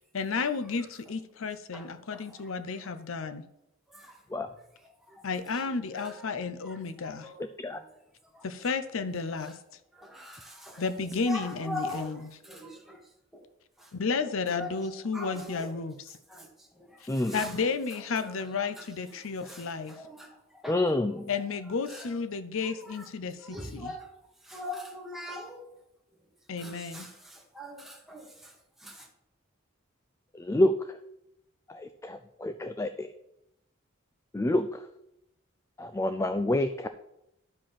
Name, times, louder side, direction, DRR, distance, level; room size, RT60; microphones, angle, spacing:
voice 1, 0.1-3.4 5.2-7.3 8.4-9.6 10.8-12.3 13.9-16.0 17.0-20.0 21.3-23.9 26.5-27.1, left 4 dB, 75° left, 10 dB, 0.6 m, -32 dB
voice 2, 1.7-2.8 3.9-4.2 4.8-5.3 5.5-6.2 6.6-8.0 8.3-8.5 9.4-9.6 9.9-10.9 11.2-13.0 13.3-13.5 13.8-13.9 14.5-15.8 16.3-17.6 18.2-20.9 21.9-22.1 22.6-23.1 23.4-24.1 24.4-25.6 26.6-28.5 28.8-29.1, left 1 dB, ahead, -1 dB, 1.7 m, -43 dB
voice 3, 17.1-17.4 20.7-21.3 30.3-31.0 31.7-33.1 34.3-34.8 35.8-36.9, left 1 dB, 15° left, 10 dB, 0.3 m, -28 dB
11.5 x 5.1 x 5.7 m, 0.84 s
head